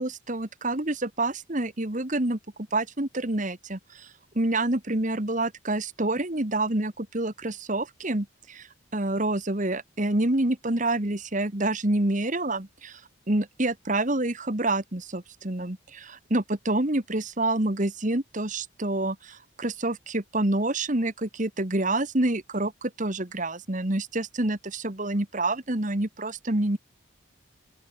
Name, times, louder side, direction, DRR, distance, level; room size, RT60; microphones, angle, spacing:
voice 1, 0.0-2.4 2.7-13.0 13.3-26.8, right 2 dB, 40° right, 1.7 m, -27 dB
open air
head